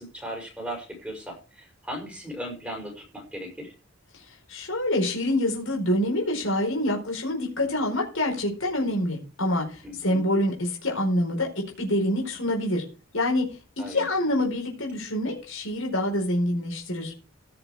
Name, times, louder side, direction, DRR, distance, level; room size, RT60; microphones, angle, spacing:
voice 1, 0.0-3.7 9.8-10.2 13.8-14.1, equal, 5° right, 1 dB, 5.9 m, -37 dB
voice 2, 4.5-11.5 11.8-12.8 13.1-13.4 13.8-17.1, left 1 dB, 65° left, 0 dB, 4.6 m, -26 dB
16.5 x 6.9 x 4.9 m, 0.33 s
head